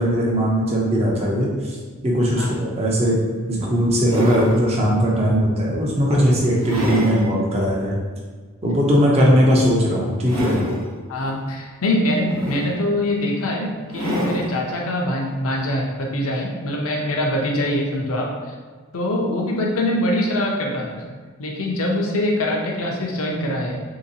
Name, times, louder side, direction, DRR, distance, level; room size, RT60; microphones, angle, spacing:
voice 1, 0.0-1.8 2.0-3.2 3.5-7.9 8.6-10.6, equal, 30° right, -4 dB, 0.5 m, -19 dB
sound 1, 2.9-3.0 3.6-4.6 5.3-5.5 6.1-7.3 7.7-7.8 9.4-9.8 10.1-10.9 12.1-13.0 13.9-14.5 15.9-16.0, equal, 75° right, 1.1 m, -27 dB
voice 2, 11.1-13.7 13.9-18.5 18.9-21.0 21.4-23.8, left 1 dB, 65° left, -1 dB, 0.6 m, -23 dB
3.2 x 2.9 x 2.7 m, 1.5 s
head